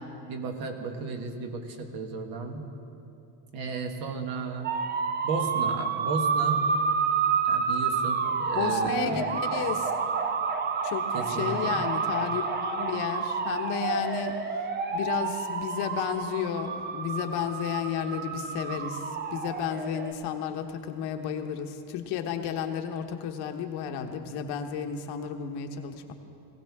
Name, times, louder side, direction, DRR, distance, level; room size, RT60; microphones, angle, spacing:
voice 1, 0.3-2.6 3.5-4.7 5.2-6.6 7.4-9.2 11.1-11.9, right 4 dB, 55° right, 4 dB, 1.6 m, -34 dB
sound 1, 4.6-20.1, right 5 dB, 25° right, 0.6 m, -29 dB
voice 2, 8.5-9.9 10.8-14.4 14.9-26.1, left 8 dB, 65° left, 5 dB, 1.2 m, -32 dB
19.5 x 16.5 x 3.6 m, 2.8 s
cardioid pair, 150°, 42 cm